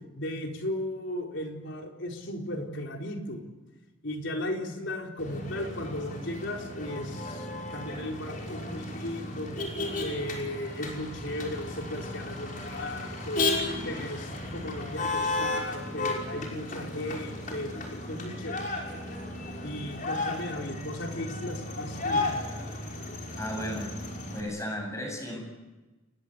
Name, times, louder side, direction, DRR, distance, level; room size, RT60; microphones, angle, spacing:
voice 1, 0.1-3.4 4.0-9.6 10.0-13.5 13.8-18.7 19.6-22.3, left 1 dB, 65° left, 1 dB, 4.4 m, -36 dB
Motor vehicle (road), 5.2-24.4, left 2 dB, 40° left, 5.7 m, -34 dB
voice 2, 23.4-23.9 24.3-25.4, equal, 15° left, 2 dB, 7.9 m, -34 dB
29.0 x 21.0 x 8.2 m, 1.1 s
head